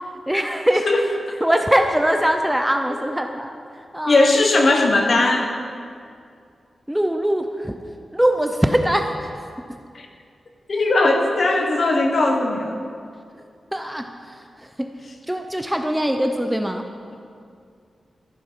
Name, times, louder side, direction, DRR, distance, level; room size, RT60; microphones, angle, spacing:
voice 1, 0.3-0.9 1.4-3.5 3.9-4.3 6.9-7.8 8.1-9.3 13.7-14.1 14.8-14.9 15.3-16.9, equal, 5° right, 5 dB, 0.5 m, -21 dB
voice 2, 4.0-5.5 9.9-10.1 10.7-12.8, left 2 dB, 50° left, 3 dB, 1.3 m, -18 dB
14.5 x 8.1 x 5.6 m, 2.3 s
wide cardioid pair, 145°, 0 cm